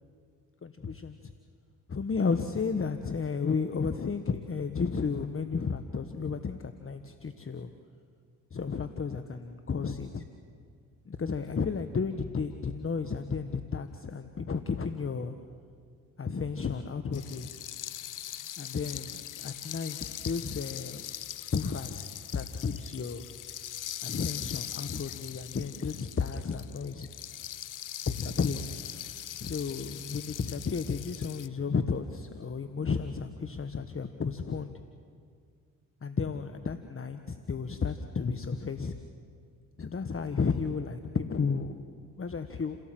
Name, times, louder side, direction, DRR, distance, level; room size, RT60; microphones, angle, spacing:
voice 1, 0.6-1.3 1.9-7.7 8.5-10.2 11.0-15.4 16.2-17.5 18.6-21.0 21.5-23.2 24.0-27.1 28.1-28.7 29.4-34.7 36.0-38.9 39.8-42.8, left 5 dB, 35° left, 9 dB, 1.3 m, -33 dB
sound 1, 17.1-31.5, left 11 dB, 60° left, 0.8 m, -41 dB
29.5 x 17.0 x 7.7 m, 2.1 s
supercardioid pair, 50°, 36 cm